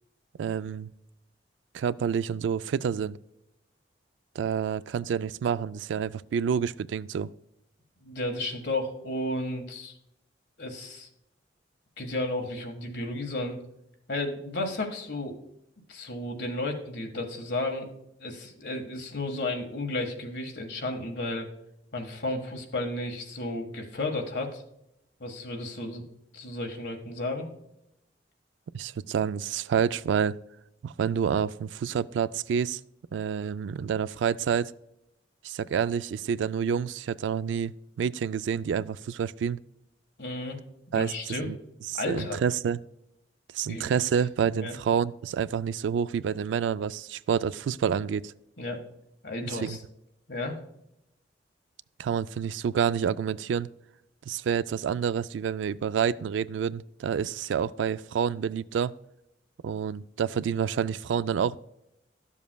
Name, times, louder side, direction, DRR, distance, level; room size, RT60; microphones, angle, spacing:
voice 1, 0.4-0.9 1.7-3.2 4.4-7.3 28.7-30.3 30.8-32.8 33.1-34.7 35.4-37.7 38.0-39.6 40.9-41.1 41.4-41.6 41.9-42.8 43.5-48.3 49.5-49.8 52.0-53.7 54.3-58.9 59.6-61.6, right 7 dB, 80° right, 17 dB, 0.3 m, -28 dB
voice 2, 8.0-9.9 10.6-11.1 12.0-13.6 14.1-15.4 15.9-17.9 18.2-21.5 21.9-24.6 25.2-26.0 26.3-27.5 40.2-40.6 40.9-41.5 41.9-42.4 43.7-43.9 44.6-44.8 48.6-48.8 49.2-49.8 50.3-50.6, left 2 dB, 65° left, 3 dB, 1.5 m, -33 dB
12.0 x 7.1 x 2.2 m, 0.81 s
head